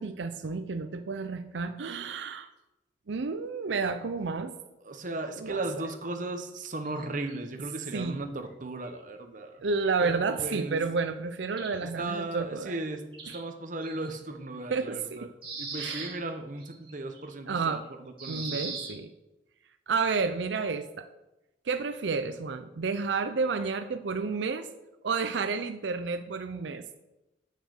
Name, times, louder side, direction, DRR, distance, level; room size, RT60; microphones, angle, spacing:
voice 1, 0.0-2.5 3.1-4.5 5.4-5.6 7.9-8.2 9.6-12.8 14.7-15.3 15.8-16.2 17.5-17.8 18.3-19.1 19.9-21.1 21.7-24.7 25.0-27.0, right 4 dB, 85° right, 9 dB, 0.5 m, -31 dB
voice 2, 4.8-9.6 10.0-10.8 11.8-15.3 15.5-18.8, right 2 dB, 45° right, 6 dB, 0.9 m, -36 dB
sound 1, 6.9-7.4 8.4-8.5 8.8-9.0 9.7-10.4 11.5-12.1 13.1-13.4 13.8-14.2 14.8-14.9 15.4-17.8 18.2-18.9, right 4 dB, 30° right, 2.3 m, -40 dB
8.4 x 6.5 x 6.5 m, 0.97 s
head